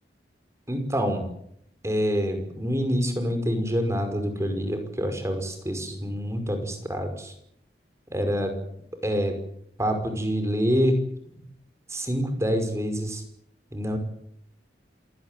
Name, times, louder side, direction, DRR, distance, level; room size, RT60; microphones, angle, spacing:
voice 1, 0.7-1.2 1.8-7.3 8.1-8.5 9.0-9.4 9.8-11.0 11.9-13.2 13.7-14.0, equal, 15° right, 7 dB, 5.4 m, -26 dB
27.0 x 17.5 x 9.3 m, 0.72 s
head